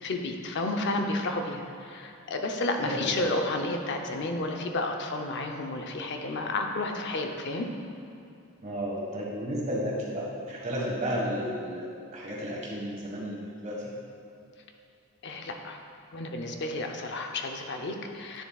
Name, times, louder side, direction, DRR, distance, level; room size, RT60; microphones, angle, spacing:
voice 1, 0.0-7.7 15.2-15.8 16.1-18.4, left 2 dB, 50° left, 3 dB, 0.6 m, -31 dB
voice 2, 2.8-3.1 8.6-13.9, equal, 35° right, -4 dB, 1.6 m, -33 dB
9.8 x 6.7 x 2.3 m, 2.6 s
head